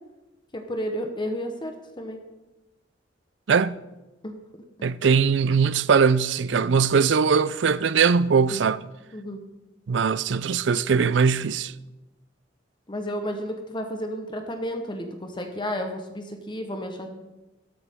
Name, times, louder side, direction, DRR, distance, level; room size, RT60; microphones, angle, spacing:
voice 1, 0.5-2.2 4.2-4.4 8.5-8.6 9.1-9.4 12.9-17.1, equal, 25° left, 1.1 m, -32 dB
voice 2, 4.8-8.8 9.9-11.7, right 5 dB, 80° right, 0.5 m, -21 dB
13.0 x 12.5 x 3.7 m
head